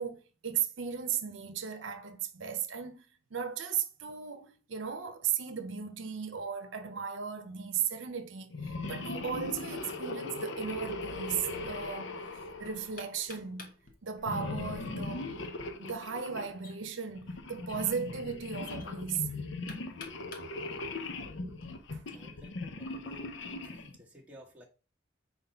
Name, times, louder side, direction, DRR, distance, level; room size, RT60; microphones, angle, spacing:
voice 1, 0.0-3.0 3.3-12.2 12.6-13.7 14.0-15.3 15.6-19.3 21.9-22.1, right 7 dB, 75° right, 0.7 m, -36 dB
sound 1, 8.5-13.3 14.2-16.5 17.1-24.0, left 2 dB, 70° left, 0.7 m, -39 dB
Knock, 11.1-21.7, left 3 dB, 45° left, 1.0 m, -55 dB
voice 2, 22.1-23.3 23.6-24.6, right 1 dB, 5° right, 1.2 m, -53 dB
4.2 x 4.0 x 5.5 m
head